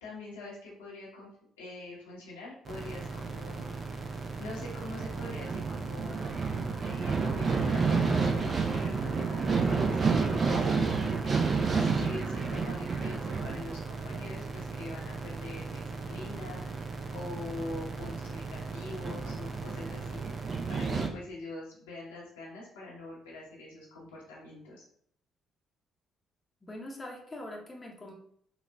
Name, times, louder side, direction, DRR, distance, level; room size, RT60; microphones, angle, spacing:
voice 1, 0.0-1.3 1.6-3.8 4.4-6.3 6.8-16.8 17.1-20.2 20.7-24.8, left 2 dB, 85° left, -6 dB, 0.9 m, -44 dB
sound 1, 2.7-21.1, right 4 dB, 45° right, 0.5 m, -31 dB
voice 2, 26.6-28.1, left 1 dB, 25° left, 0 dB, 0.7 m, -43 dB
3.8 x 2.5 x 2.2 m, 0.65 s
hypercardioid pair, 50°, 0 cm